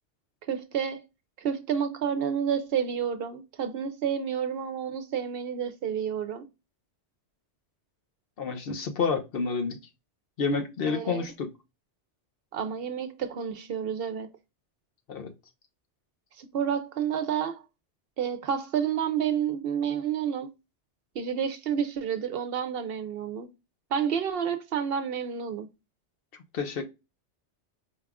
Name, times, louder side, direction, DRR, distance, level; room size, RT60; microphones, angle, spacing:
voice 1, 0.5-1.0 1.4-6.4 10.9-11.3 12.5-14.3 16.4-17.6 18.2-20.5 21.2-23.5 23.9-25.7, right 8 dB, 65° right, 0.7 m, -30 dB
voice 2, 8.4-9.8 10.4-11.5 15.1-15.3 26.5-26.8, left 5 dB, 60° left, 0.8 m, -29 dB
4.6 x 2.4 x 3.4 m
omnidirectional pair, 1.2 m